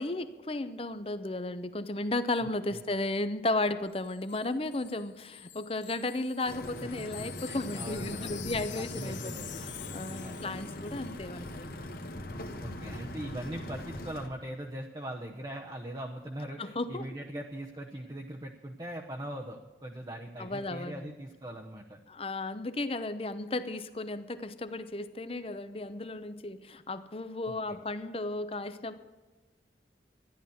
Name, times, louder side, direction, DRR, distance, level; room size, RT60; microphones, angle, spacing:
voice 1, 0.0-9.3 9.9-11.7 16.6-17.0 20.4-21.1 22.1-29.0, left 2 dB, 30° left, 12 dB, 0.7 m, -34 dB
Wind chime, 3.9-11.2 11.4-11.6, left 12 dB, 85° left, 0.9 m, -47 dB
sound 1, 6.5-14.3, left 1 dB, 55° left, 1.3 m, -41 dB
voice 2, 7.5-8.4 8.7-9.6 10.2-10.5 12.6-22.0 27.5-27.6, right 1 dB, 20° right, 1 dB, 0.8 m, -41 dB
13.5 x 11.0 x 7.1 m, 1.2 s
head